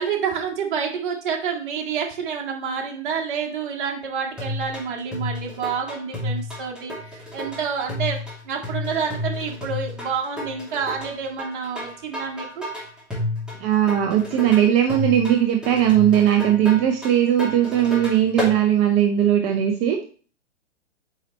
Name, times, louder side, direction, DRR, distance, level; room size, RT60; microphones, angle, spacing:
voice 1, 0.0-12.7, right 6 dB, 45° right, 0 dB, 1.9 m, -28 dB
sound 1, 4.4-18.6, left 1 dB, ahead, 2.3 m, -31 dB
voice 2, 13.6-20.0, right 10 dB, 20° right, 3 dB, 0.5 m, -19 dB
8.7 x 4.1 x 3.1 m, 0.40 s
figure-of-eight pair, 115°, 35 cm